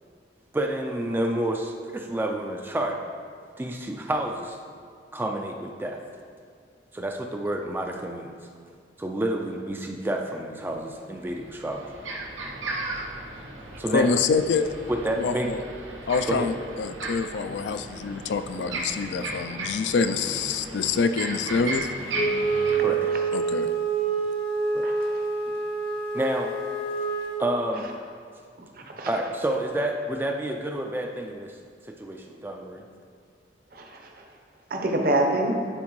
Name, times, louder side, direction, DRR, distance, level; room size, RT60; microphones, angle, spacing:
voice 1, 0.5-3.0 3.6-4.6 5.1-6.0 6.9-8.3 9.0-11.8 13.8-14.1 14.9-15.5 16.3-16.5 22.8-23.1 24.7-24.9 26.1-26.6 27.4-27.9 29.1-31.6 31.9-32.8, right 1 dB, 10° right, 2 dB, 0.3 m, -29 dB
sound 1, 11.2-22.8, right 2 dB, 85° right, 0.9 m, -36 dB
voice 2, 13.9-14.7 15.2-15.6 16.1-21.9 23.3-23.7, left 5 dB, 70° left, 10 dB, 0.3 m, -26 dB
Wind instrument woodwind instrument, 22.1-27.4, right 4 dB, 30° left, 0.6 m, -27 dB
voice 3, 24.8-25.3 29.0-29.1 33.7-34.2 34.7-35.6, right 1 dB, 50° right, 1 dB, 0.8 m, -26 dB
11.0 x 4.3 x 3.1 m, 2.2 s
head